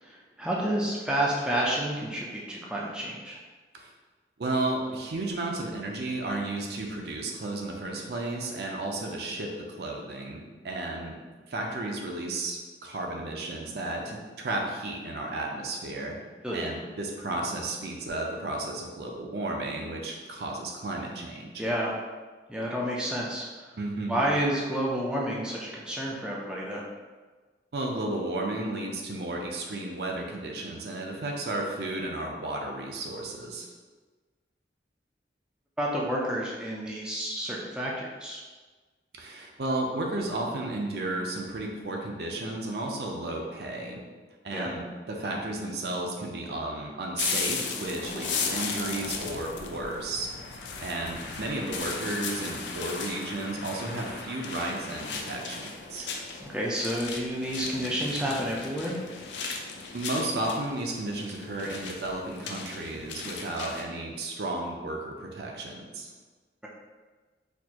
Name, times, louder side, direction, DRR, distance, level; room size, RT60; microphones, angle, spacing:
voice 1, 0.0-3.4 16.4-16.6 21.6-21.9 22.5-23.7 24.1-26.8 35.8-38.4 44.5-44.7 56.0-56.1 56.4-59.0, right 1 dB, 5° right, -4 dB, 0.4 m, -30 dB
voice 2, 4.4-11.2 11.5-16.2 16.5-21.6 23.7-24.2 27.7-33.7 39.1-44.0 44.4-50.3 50.8-56.1 59.4-59.5 59.9-66.1, right 2 dB, 65° right, 0 dB, 0.5 m, -33 dB
sound 1, 47.2-63.8, left 4 dB, 85° left, 0.4 m, -36 dB
4.3 x 2.4 x 2.8 m, 1.3 s
head